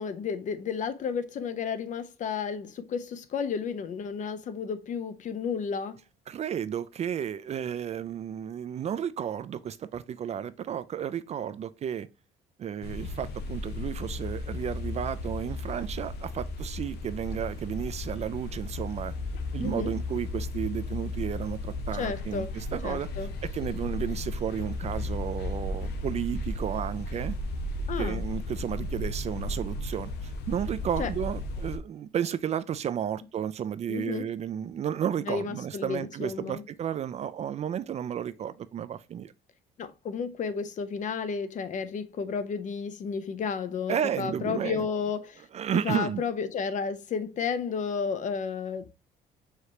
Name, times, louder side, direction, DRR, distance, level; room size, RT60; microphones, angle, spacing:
voice 1, 0.0-6.0 19.6-19.9 21.9-22.5 22.8-23.3 27.9-28.2 31.0-31.1 33.9-34.3 35.3-36.6 39.8-45.4 45.7-48.9, left 6 dB, 45° left, 0.7 m, -32 dB
voice 2, 6.3-12.1 12.6-19.1 19.5-23.1 23.4-27.3 28.0-39.3 43.9-44.9 45.5-46.2, right 9 dB, 40° right, 0.4 m, -32 dB
sound 1, 12.8-31.8, left 2 dB, 75° left, 0.9 m, -34 dB
4.9 x 3.1 x 2.8 m
cardioid pair, 110°, 17 cm